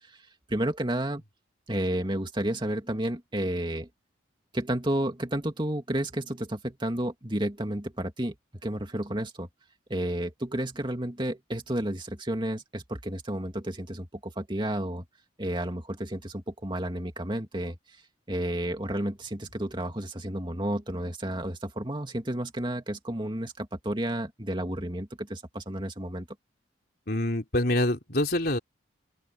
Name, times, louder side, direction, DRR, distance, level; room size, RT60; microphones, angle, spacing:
voice 1, 0.5-1.2 1.7-3.9 4.5-8.3 8.6-9.5 9.9-15.0 15.4-17.8 18.3-26.3, right 1 dB, 25° right, 2.5 m, -31 dB
voice 2, 27.1-28.6, left 1 dB, 55° left, 3.8 m, -26 dB
open air
head